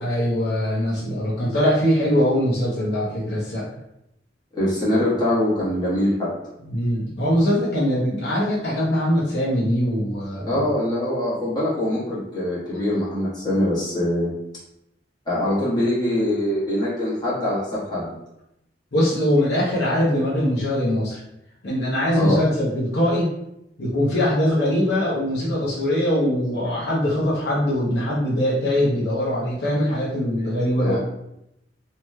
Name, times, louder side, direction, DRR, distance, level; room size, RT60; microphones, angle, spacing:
voice 1, 0.0-3.6 6.6-10.7 18.9-21.2 21.6-23.3 23.8-31.0, equal, 65° left, -7 dB, 0.8 m, -22 dB
voice 2, 4.5-6.3 10.4-14.3 15.3-18.1 22.1-22.5 30.8-31.0, left 1 dB, 25° left, -9 dB, 1.2 m, -23 dB
3.0 x 2.8 x 2.2 m, 0.84 s
head